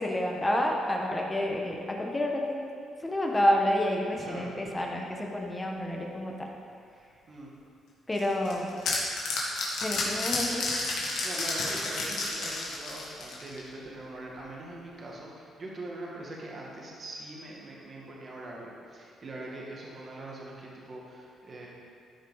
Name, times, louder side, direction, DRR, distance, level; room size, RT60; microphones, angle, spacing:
voice 1, 0.0-2.6 3.0-6.5 8.1-8.7 9.8-11.0, left 1 dB, 20° left, 0 dB, 1.2 m, -29 dB
voice 2, 4.2-4.5 7.3-7.5 11.2-21.7, right 2 dB, 45° right, -3 dB, 1.8 m, -42 dB
sound 1, 8.1-13.7, left 3 dB, 75° left, 1.8 m, -31 dB
13.0 x 5.1 x 4.1 m, 2.4 s
cardioid pair, 90°, 0 cm